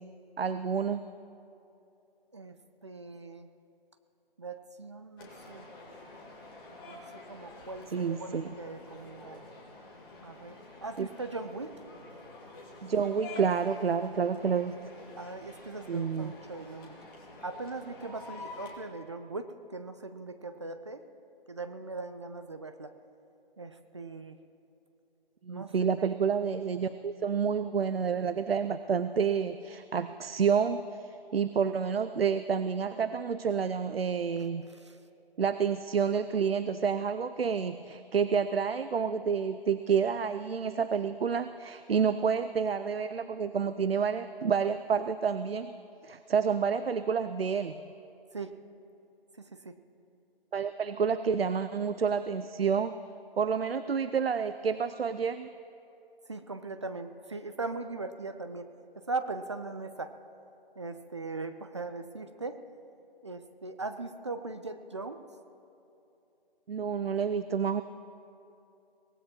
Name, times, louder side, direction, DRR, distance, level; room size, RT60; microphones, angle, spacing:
voice 1, 0.4-1.0 7.9-8.5 11.0-11.1 12.8-14.8 15.9-16.3 25.4-34.7 35.4-45.7 46.0-47.8 50.5-52.9 53.4-55.5 66.7-67.8, right 6 dB, 75° right, 12 dB, 0.6 m, -29 dB
voice 2, 2.3-3.5 4.4-5.7 6.9-9.5 10.2-11.7 15.2-17.0 17.4-21.0 21.5-22.9 23.6-24.4 25.5-25.7 34.7-35.0 48.3-48.5 49.4-49.7 56.3-58.7 59.0-60.2 60.8-62.6 63.2-65.2, right 3 dB, 30° right, 9 dB, 0.5 m, -40 dB
sound 1, 5.2-18.8, left 2 dB, 25° left, 2.2 m, -48 dB
23.5 x 18.0 x 3.0 m, 2.8 s
figure-of-eight pair, 150°, 30 cm